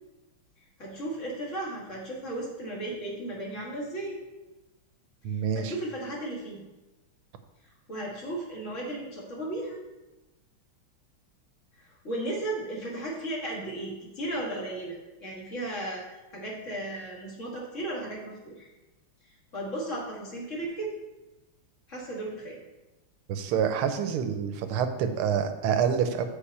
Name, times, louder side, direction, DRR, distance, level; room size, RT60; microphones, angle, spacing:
voice 1, 0.8-4.2 5.3-6.6 7.9-9.8 11.8-18.7 19.5-20.9 21.9-22.6, right 1 dB, 35° left, -3 dB, 2.3 m, -35 dB
voice 2, 5.2-5.7 23.3-26.2, right 7 dB, 85° right, 8 dB, 1.6 m, -27 dB
7.0 x 4.8 x 7.0 m, 1.1 s
omnidirectional pair, 2.3 m